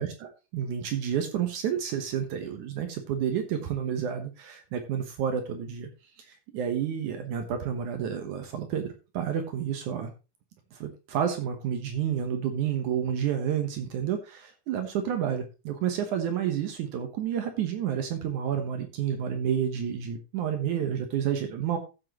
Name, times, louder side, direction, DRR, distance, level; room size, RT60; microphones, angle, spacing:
voice 1, 0.0-5.9 6.2-10.1 10.7-21.8, right 9 dB, 70° right, 6 dB, 2.3 m, -30 dB
14.0 x 7.6 x 3.0 m, 0.30 s
omnidirectional pair, 4.0 m